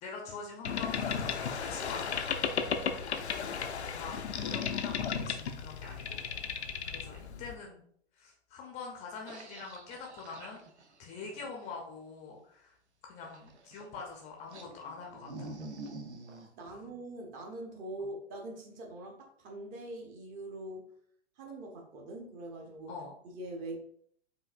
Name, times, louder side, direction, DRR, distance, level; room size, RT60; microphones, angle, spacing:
voice 1, 0.0-2.3 3.8-6.2 6.8-7.8 8.2-10.6 11.0-12.7 13.0-15.5 16.7-16.9 18.0-18.1 22.9-23.1, left 4 dB, 20° left, 0 dB, 0.6 m, -45 dB
Boat Water vehicle, 0.6-7.6, left 6 dB, 80° left, 0.6 m, -34 dB
voice 2, 6.9-7.5 16.3-20.9 21.4-22.9 23.2-23.8, right 1 dB, 25° right, 1 dB, 0.7 m, -43 dB
sound 1, 9.3-11.7 13.2-14.1 14.5-16.5, right 2 dB, 85° right, 0.7 m, -47 dB
4.8 x 2.6 x 2.5 m, 0.63 s
figure-of-eight pair, 120°, 33 cm